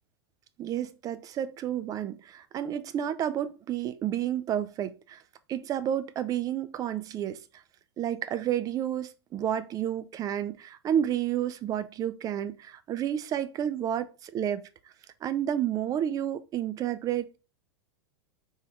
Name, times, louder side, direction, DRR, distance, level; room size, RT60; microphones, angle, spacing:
voice 1, 0.6-5.2 5.5-7.4 8.0-14.6 15.2-17.4, right 10 dB, 25° right, 0.5 m, -30 dB
4.4 x 3.4 x 3.3 m
figure-of-eight pair, 95°, 14 cm